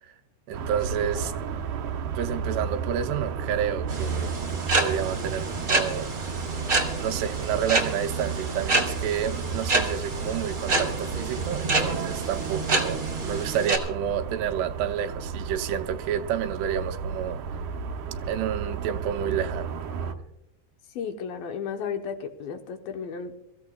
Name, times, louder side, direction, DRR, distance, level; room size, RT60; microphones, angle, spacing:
sound 1, 0.5-20.1, right 6 dB, 70° right, 1.9 m, -33 dB
voice 1, 0.5-1.3 2.2-4.4 4.8-6.1 7.0-17.4 18.3-19.8, right 9 dB, 90° right, 2.8 m, -30 dB
sound 2, 3.9-13.8, right 2 dB, 30° right, 1.6 m, -28 dB
voice 2, 21.0-23.4, left 6 dB, 75° left, 2.5 m, -34 dB
26.0 x 15.0 x 2.3 m
omnidirectional pair, 4.7 m